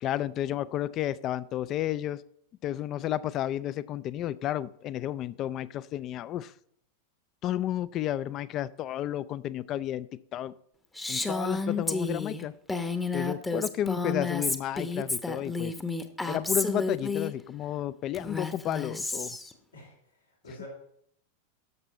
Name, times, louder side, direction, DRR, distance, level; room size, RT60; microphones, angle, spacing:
voice 1, 0.0-2.2 2.6-6.5 7.4-10.5 11.1-12.5 13.1-15.7 16.3-19.4, left 12 dB, 35° left, 19 dB, 0.4 m, -32 dB
Female speech woman speaking, 11.0-17.3 18.1-19.5, left 3 dB, 10° left, 0.8 m, -31 dB
voice 2, 19.7-20.7, left 2 dB, 80° left, -3 dB, 3.0 m, -47 dB
12.0 x 6.8 x 4.2 m, 0.71 s
figure-of-eight pair, 90°, 0 cm